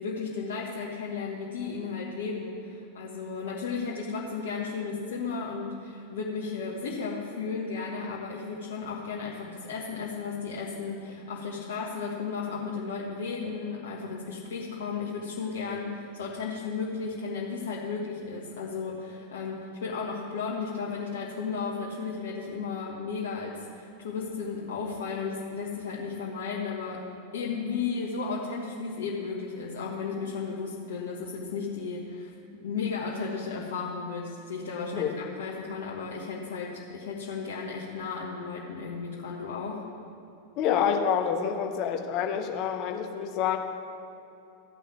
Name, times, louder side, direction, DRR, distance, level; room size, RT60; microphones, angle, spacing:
voice 1, 0.0-27.0 27.3-32.3 32.6-39.8, left 5 dB, 60° left, -4 dB, 1.5 m, -34 dB
voice 2, 40.6-43.6, left 8 dB, 40° left, 5 dB, 1.2 m, -27 dB
14.5 x 5.6 x 8.6 m, 2.8 s
figure-of-eight pair, 90°, 0 cm